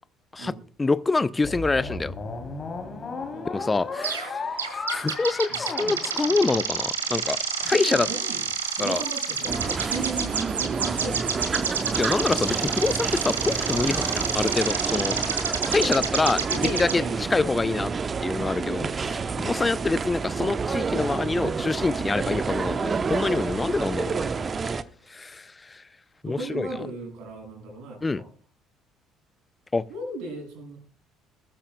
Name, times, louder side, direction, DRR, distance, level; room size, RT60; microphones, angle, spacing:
voice 1, 0.8-2.1 3.5-8.1 8.8-9.0 12.0-15.2 15.7-17.9 18.2-24.3 25.1-25.8 26.2-26.7 28.0-28.2 29.7-29.8, left 3 dB, 20° left, 0.7 m, -26 dB
sound 1, 1.4-6.9, left 3 dB, 35° left, 3.2 m, -35 dB
voice 2, 3.3-3.6 5.8-5.9 7.6-11.7 15.7-17.3 22.2-22.3 26.2-28.2 29.9-30.8, right 3 dB, 65° right, 6.0 m, -36 dB
sound 2, 4.0-4.3 4.6-17.0, right 6 dB, 85° right, 1.8 m, -29 dB
sound 3, 9.5-24.8, right 5 dB, 35° right, 0.9 m, -29 dB
21.5 x 13.0 x 2.3 m
figure-of-eight pair, 55°, 0 cm